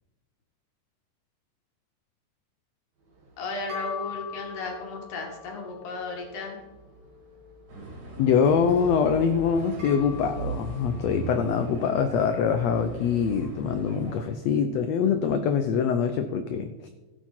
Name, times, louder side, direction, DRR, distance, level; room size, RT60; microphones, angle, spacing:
sound 1, 3.1-11.6, left 6 dB, 35° right, 2.0 m, -43 dB
voice 1, 3.4-6.6, left 3 dB, 65° left, 1 dB, 3.5 m, -35 dB
sound 2, 7.7-14.2, right 2 dB, 70° right, 4.3 m, -38 dB
voice 2, 8.2-16.9, left 6 dB, 80° left, 8 dB, 1.5 m, -24 dB
16.5 x 8.1 x 4.4 m, 1.2 s
omnidirectional pair, 3.8 m